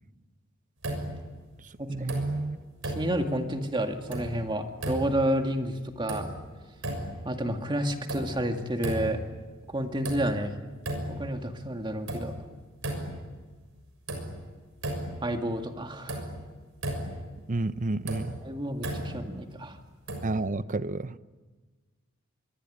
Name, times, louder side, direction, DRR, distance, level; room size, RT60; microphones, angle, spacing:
sound 1, 0.8-1.5 1.9-2.5 2.8-3.5 3.9-4.5 4.8-5.4 5.8-6.5 6.8-7.4 7.8-8.5 8.8-9.4 9.8-10.5 10.8-11.4 11.8-13.3 13.7-13.8 14.1-15.3 15.6-15.7 16.1-17.3 17.8-19.3 20.1-20.5, right 1 dB, 70° right, 6.5 m, -35 dB
voice 1, 1.9-2.6 17.5-18.4 20.2-21.2, right 2 dB, 40° right, 0.8 m, -30 dB
voice 2, 2.8-6.3 7.2-9.2 9.7-10.5 11.1-12.3 15.2-16.3 18.4-19.8, right 1 dB, 25° right, 2.1 m, -30 dB
25.5 x 22.5 x 10.0 m
head